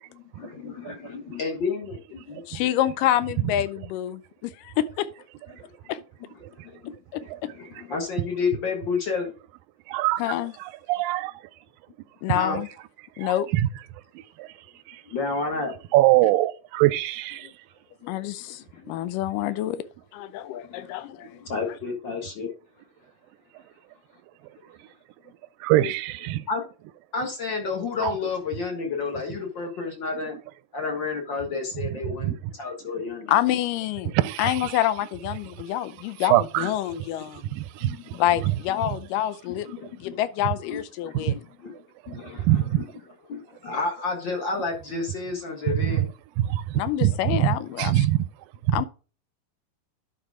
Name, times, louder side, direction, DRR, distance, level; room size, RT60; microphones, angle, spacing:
voice 1, 0.1-2.4 5.5-5.7 6.6-9.3 12.3-12.6 15.0-15.8 18.6-18.8 20.6-22.5 26.5-26.6 27.1-30.4 30.7-33.3 37.7-38.3 38.7-38.8 39.5-40.2 40.6-41.7 42.1-42.9 43.3-46.1, left 4 dB, 45° left, 1.6 m, -31 dB
voice 2, 2.5-5.1 5.9-6.0 7.1-7.2 10.2-10.5 12.2-12.7 13.2-13.5 17.4-17.5 18.1-19.9 20.1-21.4 25.8-25.9 33.3-34.1 34.4-37.5 38.2-39.7 40.0-41.4 46.7-48.1 48.7-48.9, left 12 dB, 80° left, 2.2 m, -27 dB
voice 3, 9.9-11.3 12.3-12.4 13.2-13.7 14.4-14.5 14.9-15.0 15.9-17.5 25.6-26.5 28.0-28.1 32.2-32.4 34.1-34.7 36.2-36.7 37.3-38.2 41.1-41.4 42.4-42.8 45.7-46.1 46.4-48.3 48.7-48.8, right 15 dB, 90° right, 2.3 m, -23 dB
11.0 x 4.8 x 3.7 m
omnidirectional pair, 3.9 m